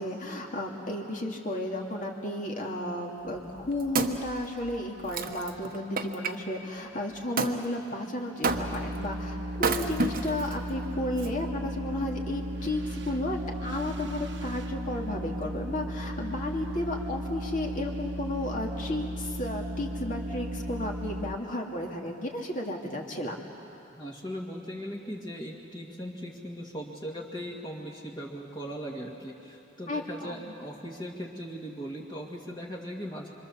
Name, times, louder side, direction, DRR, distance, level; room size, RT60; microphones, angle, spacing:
voice 1, 0.0-23.4 29.9-30.4, left 1 dB, 45° left, 0 dB, 2.5 m, -33 dB
Wood, 3.4-6.3 7.4-7.6 8.4-9.0 9.5-10.5 11.2-11.3, right 3 dB, 50° right, 1.1 m, -30 dB
sound 1, 8.4-21.3, equal, 70° right, 1.3 m, -35 dB
voice 2, 23.9-33.3, equal, 25° left, -2 dB, 2.0 m, -39 dB
26.0 x 25.5 x 7.2 m, 2.8 s
head